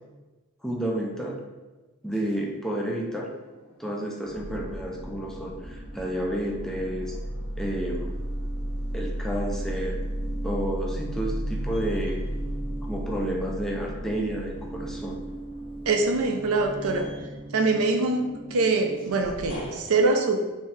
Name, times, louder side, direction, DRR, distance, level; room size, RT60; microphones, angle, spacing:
voice 1, 0.6-1.4 2.0-3.3 3.8-7.1 7.6-8.2 8.9-10.0 10.4-12.2 12.8-15.2, right 1 dB, ahead, -1 dB, 0.3 m, -31 dB
sound 1, 2.8-3.5 3.9-19.8, right 1 dB, 25° left, 0.7 m, -34 dB
voice 2, 15.9-17.1 17.5-20.4, right 3 dB, 70° right, 4 dB, 0.5 m, -24 dB
3.3 x 2.8 x 3.2 m, 1.2 s
head